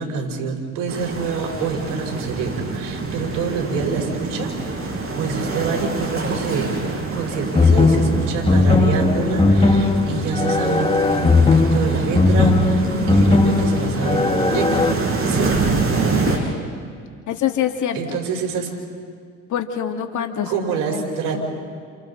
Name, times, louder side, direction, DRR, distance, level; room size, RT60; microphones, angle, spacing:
voice 1, 0.0-4.5 5.1-6.7 7.1-14.8 15.2-15.5 17.9-18.7 20.5-21.4, right 5 dB, 70° right, 1 dB, 5.1 m, -26 dB
sound 1, 0.9-16.4, right 3 dB, 40° right, 6.1 m, -26 dB
sound 2, 7.5-14.9, left 3 dB, 15° left, 1.7 m, -17 dB
voice 2, 17.3-18.2 19.5-21.0 21.3-21.4, left 9 dB, 55° left, 4 dB, 2.4 m, -25 dB
29.0 x 29.0 x 4.2 m, 2.1 s
supercardioid pair, 70°, 35 cm